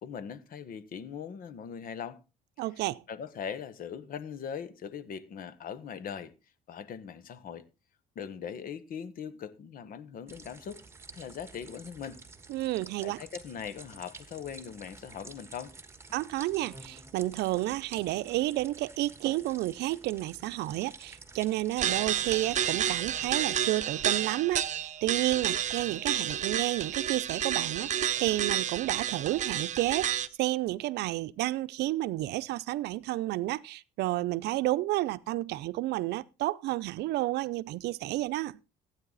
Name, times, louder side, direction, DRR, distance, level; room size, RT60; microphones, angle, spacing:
voice 1, 0.0-2.2 2.8-6.3 6.7-7.7 8.1-10.8 11.1-12.2 13.0-15.7, left 7 dB, 55° left, 1.4 m, -40 dB
voice 2, 2.6-3.0 12.5-13.2 16.1-38.6, right 16 dB, 80° right, 0.6 m, -31 dB
sound 1, 10.3-23.3, right 3 dB, 15° right, 1.5 m, -51 dB
sound 2, 21.8-30.3, right 10 dB, 45° right, 0.8 m, -30 dB
16.0 x 9.2 x 4.1 m
cardioid pair, 110°, 17 cm